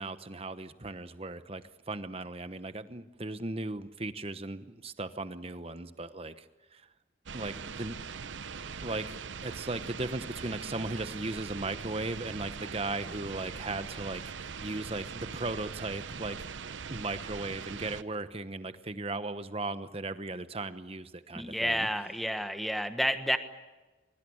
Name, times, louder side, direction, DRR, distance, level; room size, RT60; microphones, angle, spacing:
voice 1, 0.0-6.4 6.7-6.9 7.3-8.0 8.8-16.4 16.9-21.9, right 2 dB, 30° right, 11 dB, 1.0 m, -37 dB
sound 1, 7.3-18.0, right 6 dB, 80° right, 0.8 m, -41 dB
voice 2, 21.3-23.4, equal, ahead, 8 dB, 1.3 m, -30 dB
24.0 x 22.5 x 8.7 m, 1.2 s
head